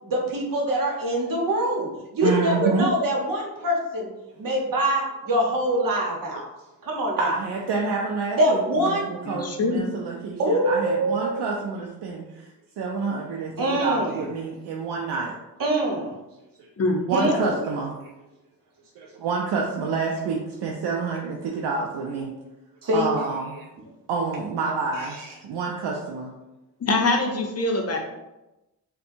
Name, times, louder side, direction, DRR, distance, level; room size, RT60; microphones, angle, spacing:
voice 1, 0.0-4.1 4.4-6.5 6.8-7.4 8.4-9.1 10.4-11.4 13.6-14.2 15.6-16.1 17.1-17.4 22.8-23.1 25.0-25.3, right 1 dB, 60° right, -1 dB, 1.0 m, -24 dB
voice 2, 2.2-2.9 7.2-12.5 12.8-15.3 17.1-17.9 19.0-22.3 22.9-23.6 24.1-25.2 25.4-26.3, right 4 dB, 85° right, -1 dB, 0.5 m, -28 dB
voice 3, 9.3-9.8 16.8-17.5 26.8-28.0, left 2 dB, 40° left, 2 dB, 0.6 m, -24 dB
4.2 x 2.2 x 2.6 m, 0.99 s
cardioid pair, 75°, 39 cm